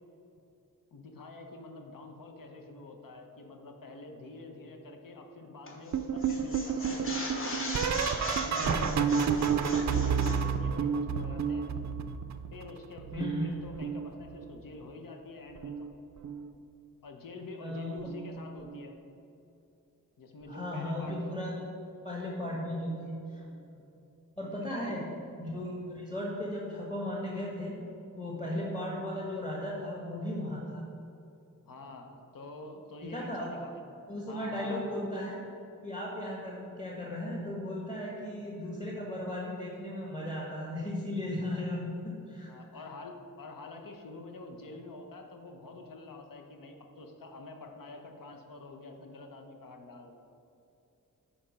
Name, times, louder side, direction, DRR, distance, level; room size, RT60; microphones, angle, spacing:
voice 1, 0.9-7.6 8.3-8.9 9.4-11.7 12.5-15.9 17.0-19.0 20.2-21.2 22.4-22.6 23.4-23.8 24.7-25.0 28.3-28.6 31.7-33.8 34.3-34.8 42.5-50.1, left 2 dB, 75° left, 4 dB, 1.0 m, -47 dB
sound 1, 5.7-5.9 6.2-10.4, left 2 dB, 40° left, 1.2 m, -39 dB
sound 2, 5.9-12.7 13.0-14.6 15.6-15.9 16.2-16.5 18.1-18.3 18.7-18.9 20.5-20.6, right 6 dB, 55° right, 0.4 m, -31 dB
voice 2, 8.5-9.2 13.1-13.6 17.6-18.0 20.5-21.6 22.0-23.4 24.4-25.1 25.4-27.8 28.2-30.8 33.0-33.5 34.1-35.4 35.8-42.5, left 1 dB, 20° left, -4 dB, 1.3 m, -36 dB
10.0 x 4.4 x 5.2 m, 2.8 s
wide cardioid pair, 155°, 33 cm